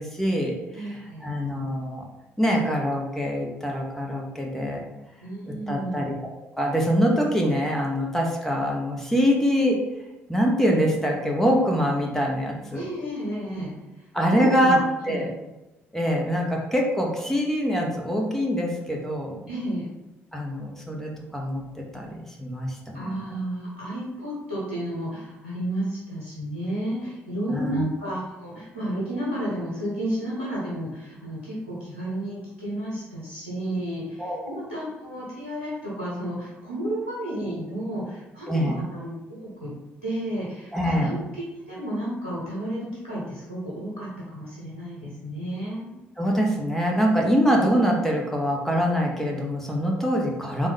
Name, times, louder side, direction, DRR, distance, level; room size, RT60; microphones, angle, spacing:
voice 1, 0.0-2.1 2.4-4.8 5.5-6.1 6.6-9.8 10.3-12.8 14.1-14.8 15.1-15.3 15.9-19.4 20.3-23.4 27.5-27.8 34.2-34.5 38.5-38.8 40.7-41.2 46.2-50.7, equal, 5° left, -1 dB, 0.9 m, -24 dB
voice 2, 0.7-1.3 5.2-6.1 12.7-13.7 14.3-15.3 19.5-19.9 22.9-39.7 40.0-41.2 41.5-45.9, right 1 dB, 90° right, -7 dB, 1.2 m, -32 dB
3.5 x 3.1 x 3.4 m, 1.0 s
figure-of-eight pair, 45°, 7 cm